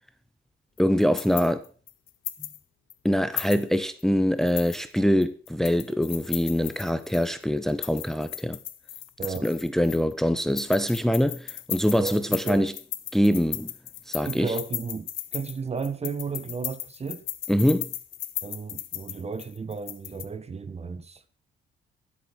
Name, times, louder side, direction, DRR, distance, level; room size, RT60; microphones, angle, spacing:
sound 1, 0.8-2.6 2.9-3.0 3.4-4.0 4.4-7.3 7.7-10.1 10.4-20.3, left 13 dB, 80° left, 1.3 m, -36 dB
voice 1, 0.8-1.6 3.0-8.6 9.4-12.7 13.1-13.7 14.1-14.5 17.5-17.9, equal, ahead, 0.9 m, -24 dB
voice 2, 12.0-12.7 14.2-17.2 18.4-21.2, right 5 dB, 30° right, 1.3 m, -33 dB
13.0 x 8.3 x 6.0 m
cardioid pair, 90°, 20 cm